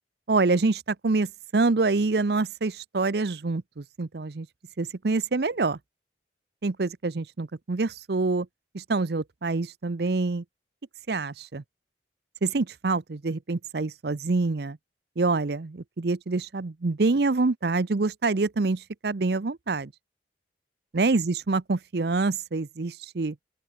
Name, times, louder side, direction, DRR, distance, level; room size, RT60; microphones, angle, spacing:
voice 1, 0.3-4.5 4.8-5.8 6.6-8.5 8.7-10.4 11.1-11.6 12.4-14.8 15.2-19.9 20.9-23.4, right 3 dB, 60° right, 0.7 m, -26 dB
open air
head